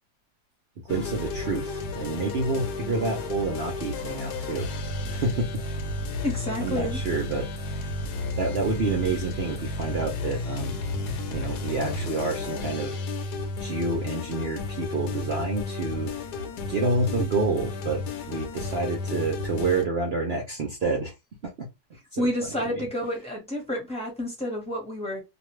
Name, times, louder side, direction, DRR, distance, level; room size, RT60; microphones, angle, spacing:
sound 1, 0.9-19.8, left 2 dB, 75° left, 1.2 m, -32 dB
voice 1, 0.9-4.7 5.1-5.5 6.6-7.5 8.4-10.8 11.3-13.0 13.6-16.1 16.7-21.1 21.4-21.7 22.1-22.3, right 3 dB, 65° right, 0.6 m, -28 dB
voice 2, 6.2-7.0 22.2-25.2, left 1 dB, 5° left, 0.9 m, -29 dB
2.5 x 2.4 x 3.0 m
omnidirectional pair, 1.8 m